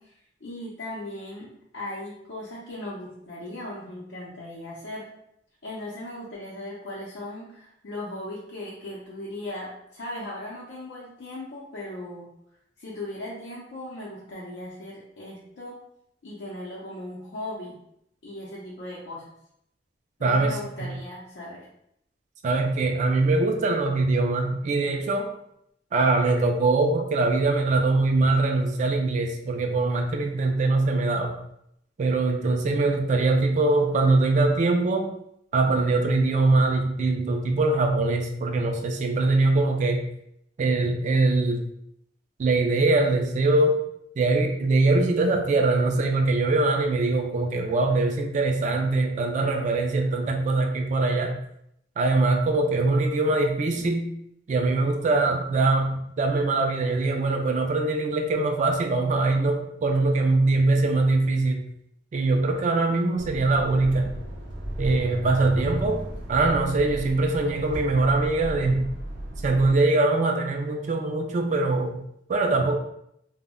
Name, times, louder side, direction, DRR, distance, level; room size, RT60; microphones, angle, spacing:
voice 1, 0.0-5.1 5.6-12.3 12.8-15.8 16.2-17.8 18.2-19.3 20.2-21.6, left 1 dB, 75° left, -7 dB, 0.6 m, -38 dB
voice 2, 20.2-20.9 22.4-25.3 25.9-31.4 32.0-35.1 35.5-40.1 40.6-41.7 42.4-43.8 44.2-51.4 52.0-54.1 54.5-61.6 62.1-64.1 64.8-68.9 69.4-72.0 72.3-72.8, right 2 dB, 40° right, 3 dB, 0.3 m, -22 dB
sound 1, 63.2-69.8, right 1 dB, 80° right, 0.6 m, -35 dB
2.1 x 2.0 x 3.5 m, 0.75 s
head